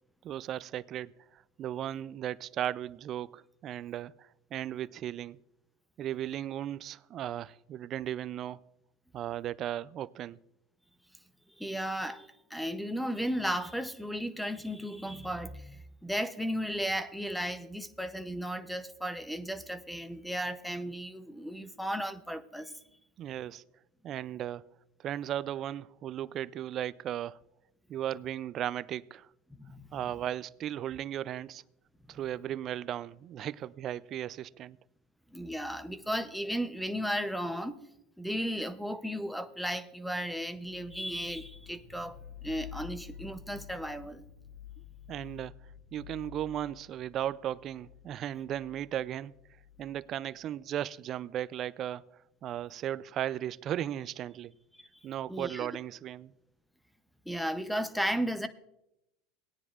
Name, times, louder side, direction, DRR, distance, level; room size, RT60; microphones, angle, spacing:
voice 1, 0.2-5.4 6.0-8.7 9.1-10.4 23.2-23.6 24.0-24.6 25.0-27.4 27.9-29.3 29.9-31.6 32.1-34.8 45.1-45.5 45.9-49.3 49.8-52.1 52.4-54.5 55.0-56.3, right 11 dB, 40° right, 0.3 m, -36 dB
voice 2, 11.6-22.7 29.5-30.0 35.3-37.8 38.2-42.2 42.4-44.2 55.3-55.7 57.3-58.5, equal, ahead, 0.6 m, -35 dB
sound 1, 40.6-50.5, left 9 dB, 50° left, 4.7 m, -50 dB
19.0 x 9.8 x 2.4 m
supercardioid pair, 115°, 0 cm